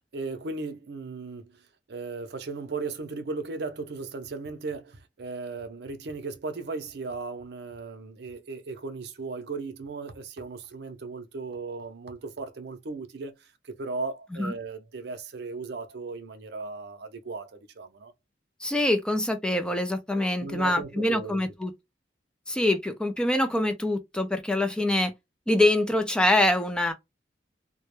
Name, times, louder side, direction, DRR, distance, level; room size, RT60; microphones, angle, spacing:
voice 1, 0.0-18.1 20.4-21.5, right 3 dB, 65° right, 0.5 m, -37 dB
voice 2, 18.6-21.7 22.5-25.1 25.5-26.9, left 1 dB, 5° left, 0.3 m, -25 dB
2.2 x 2.1 x 3.0 m
head